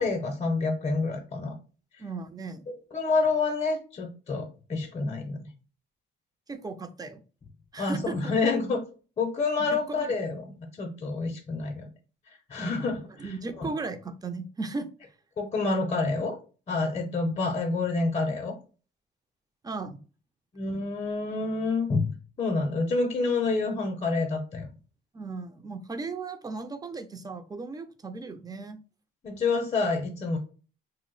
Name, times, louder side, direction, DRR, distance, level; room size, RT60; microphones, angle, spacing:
voice 1, 0.0-1.5 2.7-5.4 7.8-8.8 9.2-11.9 12.5-13.7 15.4-16.4 16.7-18.6 20.5-22.1 22.4-24.7 29.2-30.4, left 3 dB, 35° left, 3 dB, 0.6 m, -28 dB
voice 2, 2.0-2.6 6.5-7.2 7.7-8.3 9.7-10.1 12.6-12.9 13.2-14.9 19.6-20.0 25.1-28.8, right 3 dB, 20° right, 9 dB, 0.4 m, -36 dB
2.5 x 2.0 x 3.9 m, 0.36 s
cardioid pair, 90°, 20 cm